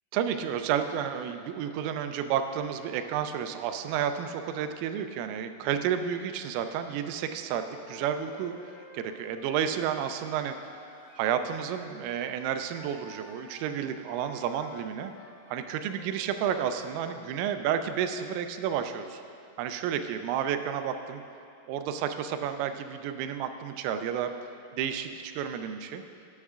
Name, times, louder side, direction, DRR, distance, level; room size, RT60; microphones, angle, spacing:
voice 1, 0.1-10.7 11.2-15.1 15.5-19.2 19.6-21.2 21.7-24.3 24.7-26.0, right 8 dB, 85° right, 8 dB, 3.2 m, -31 dB
sound 1, 7.5-11.8 12.7-17.3, left 3 dB, 75° left, 3.1 m, -52 dB
18.0 x 10.0 x 2.4 m, 2.8 s
omnidirectional pair, 5.7 m